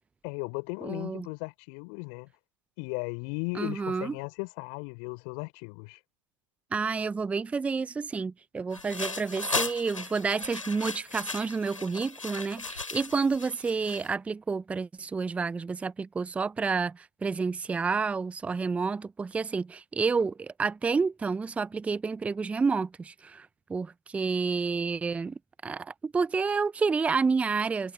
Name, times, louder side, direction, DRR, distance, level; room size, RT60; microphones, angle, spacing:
voice 1, 0.2-2.3 2.8-6.0, left 40 dB or more, 35° left, 6.4 m, -36 dB
voice 2, 0.8-1.3 3.5-4.1 6.7-27.9, right 4 dB, 10° right, 0.9 m, -29 dB
sound 1, 8.7-14.1, left 3 dB, 80° left, 7.7 m, -36 dB
figure-of-eight pair, 110°, 17 cm